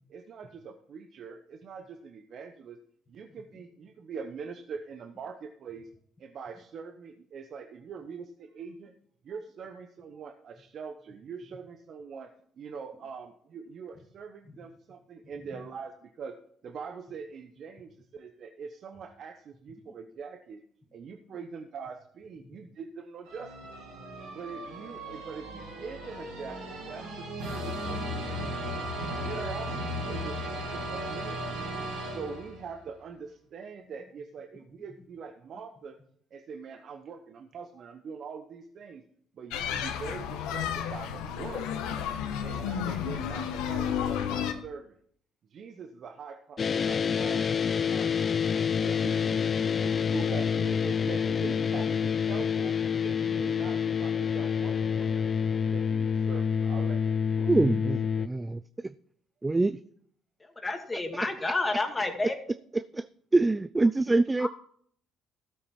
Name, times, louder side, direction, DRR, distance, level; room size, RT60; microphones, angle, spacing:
voice 1, 0.1-2.8 3.1-5.9 6.2-8.9 9.2-12.3 12.6-16.4 16.6-20.6 20.9-23.5 24.3-28.7 29.2-31.7 32.0-36.0 36.3-39.0 39.3-41.7 42.4-45.0 45.5-47.4 47.8-48.2 48.7-52.8 53.0-55.3 55.6-57.5, right 5 dB, 60° right, 7 dB, 0.9 m, -43 dB
sound 1, 23.3-32.8, equal, 90° right, 4.5 m, -36 dB
sound 2, 39.5-44.5, left 8 dB, 80° left, 1.2 m, -32 dB
sound 3, 46.6-58.3, left 7 dB, 45° left, 0.5 m, -27 dB
voice 2, 57.4-58.9 59.4-59.8 61.1-61.6 62.2-62.3 62.7-64.5, right 2 dB, 20° right, 16 dB, 0.4 m, -26 dB
voice 3, 60.6-62.3 64.4-64.5, left 2 dB, 25° left, 4 dB, 2.2 m, -29 dB
14.0 x 7.8 x 4.4 m, 0.63 s
supercardioid pair, 65°, 0 cm